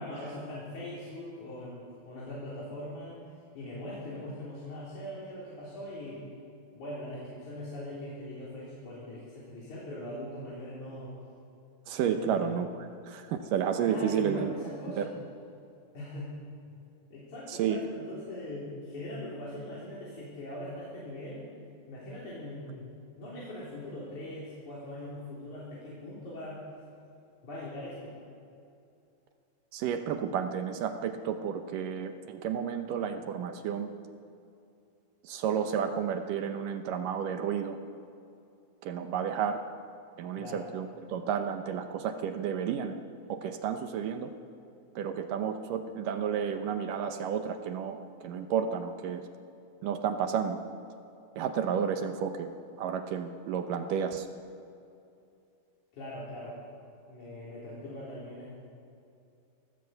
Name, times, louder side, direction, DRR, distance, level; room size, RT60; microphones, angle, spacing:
voice 1, 0.0-3.2 3.5-6.2 6.7-11.1 12.1-12.6 13.8-15.1 15.9-16.3 17.1-21.4 21.9-22.8 23.2-26.6 27.4-28.1 40.3-40.6 55.9-56.6 57.1-58.6, left 1 dB, 45° left, -8 dB, 4.8 m, -41 dB
voice 2, 11.9-14.5 15.0-15.1 17.5-17.8 29.7-33.9 35.2-37.8 38.8-39.6 40.2-43.0 43.3-44.3 45.0-49.3 49.8-50.6 51.4-52.5 52.8-54.3, right 7 dB, 75° right, 7 dB, 2.1 m, -31 dB
19.5 x 16.5 x 8.0 m, 2.6 s
omnidirectional pair, 4.8 m